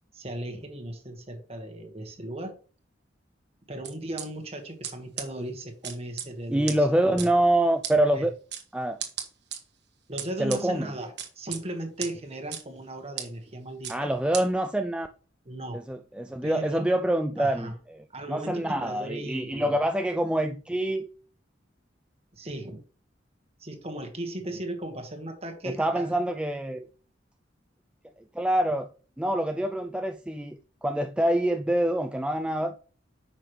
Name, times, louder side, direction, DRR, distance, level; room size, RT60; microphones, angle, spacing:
voice 1, 0.1-2.5 3.7-7.3 8.1-8.3 10.1-14.1 15.4-15.8 16.4-16.9 17.4-17.7 18.1-19.8 22.3-22.8 23.6-26.1, right 1 dB, 30° right, 1.5 m, -37 dB
sound 1, 3.8-4.2 4.8-4.9 5.2-5.3 5.8-6.3 6.7-6.8 7.2-7.3 7.8-7.9 8.5-8.6 9.0-9.6 10.2-10.6 11.2-11.6 12.0-12.1 12.5-12.6 13.2-13.3 13.8-14.0 14.3-14.4, right 9 dB, 60° right, 1.4 m, -33 dB
voice 2, 6.5-8.3 8.7-9.0 10.4-10.9 13.9-15.1 15.7-21.1 25.6-26.9 28.3-28.9 29.2-32.8, right 1 dB, 5° right, 0.3 m, -26 dB
9.4 x 5.9 x 3.2 m
head